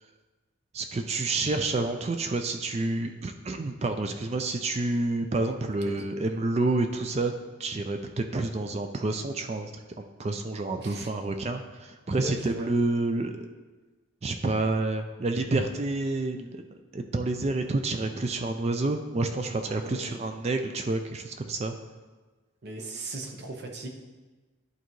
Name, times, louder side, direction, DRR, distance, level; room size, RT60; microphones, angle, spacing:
voice 1, 0.7-7.3 7.6-13.5 14.2-16.6 16.9-21.7, right 2 dB, 30° right, 6 dB, 0.4 m, -29 dB
voice 2, 10.8-11.1 12.2-12.7 19.6-20.2 22.6-23.9, right 1 dB, 50° right, 3 dB, 0.8 m, -38 dB
11.0 x 4.0 x 3.1 m, 1.3 s
head